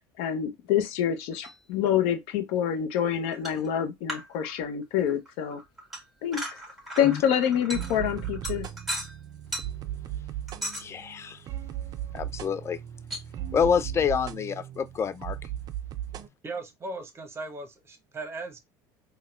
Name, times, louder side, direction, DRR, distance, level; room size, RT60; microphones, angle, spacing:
voice 1, 0.2-5.6 6.2-6.4 7.0-8.7, left 9 dB, 70° left, 0.7 m, -26 dB
sound 1, 1.3-1.6 1.9-2.0 3.3-3.7 4.1-4.8 5.1-9.2 9.5-9.7 10.5-10.9 13.1-13.2, equal, ahead, 1.7 m, -37 dB
sound 2, 7.7-16.3, right 11 dB, 40° right, 0.4 m, -37 dB
voice 2, 10.8-11.4 12.1-12.8 13.5-15.4, left 7 dB, 25° left, 0.4 m, -27 dB
voice 3, 16.1-18.6, right 3 dB, 25° right, 0.8 m, -38 dB
4.0 x 2.2 x 2.3 m
supercardioid pair, 100°, 10 cm